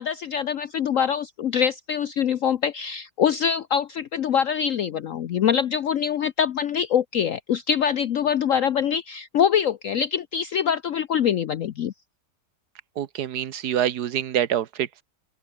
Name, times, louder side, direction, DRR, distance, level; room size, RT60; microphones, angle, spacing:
voice 1, 0.0-11.9, left 8 dB, 60° left, 1.0 m, -24 dB
voice 2, 13.0-15.0, right 10 dB, 70° right, 1.6 m, -26 dB
open air
omnidirectional pair, 1.8 m